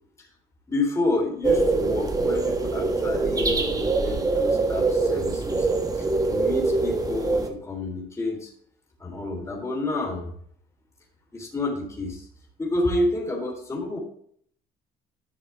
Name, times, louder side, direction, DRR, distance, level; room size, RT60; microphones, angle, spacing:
voice 1, 0.7-5.7 6.0-8.5 9.0-10.3 11.3-12.3 12.6-14.0, left 2 dB, 15° left, -2 dB, 3.6 m, -29 dB
sound 1, 1.4-7.5, right 3 dB, 20° right, 1.2 m, -24 dB
12.0 x 6.4 x 3.5 m, 0.62 s
cardioid pair, 110°, 17 cm